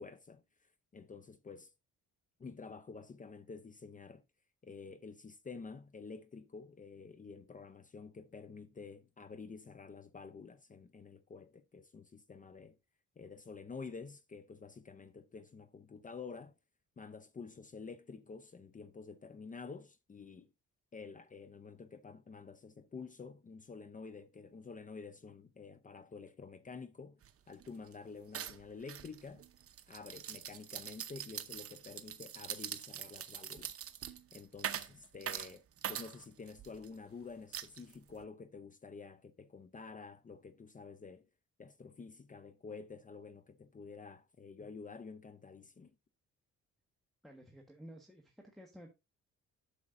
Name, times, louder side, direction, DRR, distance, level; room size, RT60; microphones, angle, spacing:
voice 1, 0.0-1.7 2.4-4.2 4.6-12.8 13.2-16.5 17.0-20.5 20.9-27.2 27.5-29.5 29.9-33.8 34.3-41.3 41.6-45.9, left 4 dB, 25° left, 0.6 m, -49 dB
sound 1, 27.2-27.3 27.6-27.9 28.3-36.9 37.5-38.2, right 9 dB, 50° right, 0.8 m, -43 dB
voice 2, 47.2-48.9, equal, ahead, 1.4 m, -53 dB
9.5 x 6.4 x 2.5 m
cardioid pair, 90°, 30 cm